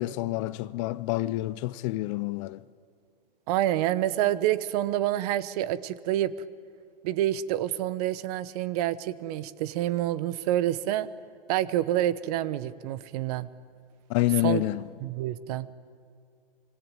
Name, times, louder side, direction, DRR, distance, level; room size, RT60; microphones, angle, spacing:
voice 1, 0.0-2.6 14.1-14.9, left 18 dB, 35° left, 0.6 m, -28 dB
voice 2, 3.5-6.3 7.0-11.1 11.5-13.5 14.4-14.6 15.0-15.7, right 13 dB, 40° right, 1.1 m, -27 dB
26.0 x 25.0 x 9.1 m
hypercardioid pair, 130°, 29 cm